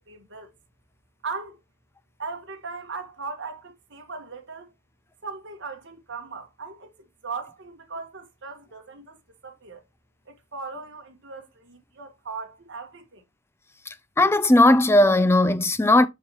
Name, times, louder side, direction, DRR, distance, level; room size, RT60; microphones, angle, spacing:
voice 1, 0.1-0.5 1.2-1.6 2.2-4.7 5.2-9.8 10.2-13.2, right 4 dB, 55° right, 1.6 m, -38 dB
voice 2, 14.2-16.1, left 1 dB, 10° left, 0.4 m, -17 dB
7.1 x 5.6 x 3.0 m
head